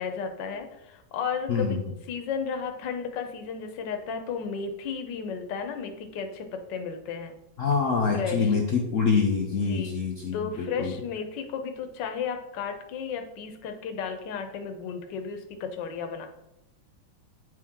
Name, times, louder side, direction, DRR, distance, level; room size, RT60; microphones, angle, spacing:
voice 1, 0.0-7.4 8.1-8.5 9.6-9.9 10.3-16.3, left 6 dB, 65° left, 6 dB, 1.4 m, -34 dB
voice 2, 1.5-1.8 7.6-10.9, left 5 dB, 85° left, 1 dB, 0.7 m, -25 dB
8.7 x 4.7 x 3.6 m, 0.88 s
omnidirectional pair, 2.3 m